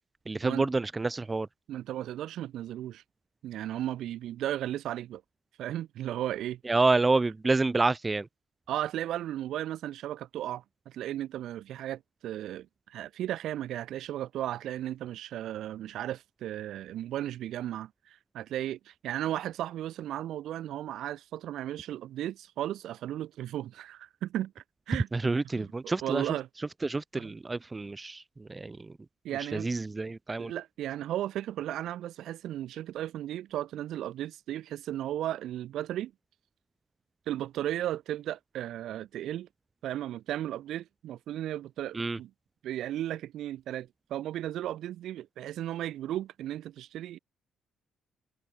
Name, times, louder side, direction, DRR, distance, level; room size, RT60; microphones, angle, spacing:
voice 1, 0.3-1.5 6.7-8.3 25.1-26.3 26.8-28.8 29.5-30.5 41.9-42.2, right 3 dB, 20° right, 0.5 m, -28 dB
voice 2, 1.7-3.0 3.4-5.2 5.6-6.6 8.7-25.1 25.5-26.5 27.2-27.3 29.2-29.7 30.4-36.1 37.3-39.5 39.8-42.3 42.6-47.2, right 12 dB, 75° right, 1.8 m, -35 dB
cardioid pair, 85°, 0 cm